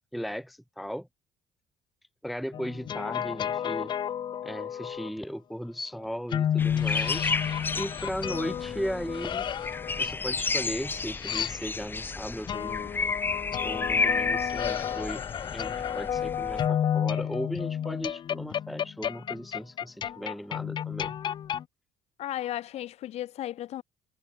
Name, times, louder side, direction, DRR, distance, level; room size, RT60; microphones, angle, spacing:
voice 1, 0.1-1.1 2.2-3.9 4.4-9.5 9.9-12.9 13.6-15.2 15.5-21.2, equal, ahead, 0.5 m, -36 dB
sound 1, 2.5-5.1 6.3-12.0 12.5-21.6, left 9 dB, 35° left, 0.8 m, -31 dB
sound 2, 6.6-16.7, left 4 dB, 15° left, 1.1 m, -32 dB
voice 2, 22.2-23.8, left 13 dB, 50° left, 2.1 m, -34 dB
cardioid pair, 165°, 14 cm